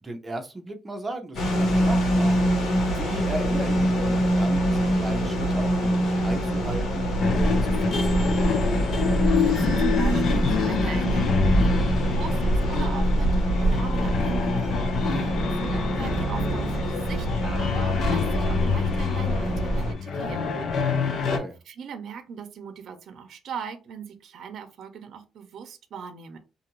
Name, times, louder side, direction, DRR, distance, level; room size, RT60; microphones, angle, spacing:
voice 1, 0.0-2.4 2.8-8.5 15.0-15.4 21.1-21.6, right 2 dB, 20° right, 4 dB, 0.7 m, -36 dB
sound 1, 1.3-19.9, right 1 dB, 75° left, 1.2 m, -24 dB
sound 2, 7.2-21.4, left 5 dB, 55° left, 0.6 m, -27 dB
voice 2, 9.4-14.5 14.9-20.5 20.9-21.3 21.7-26.4, right 6 dB, 60° right, 8 dB, 0.6 m, -39 dB
2.6 x 2.5 x 3.0 m, 0.29 s
cardioid pair, 135°, 0 cm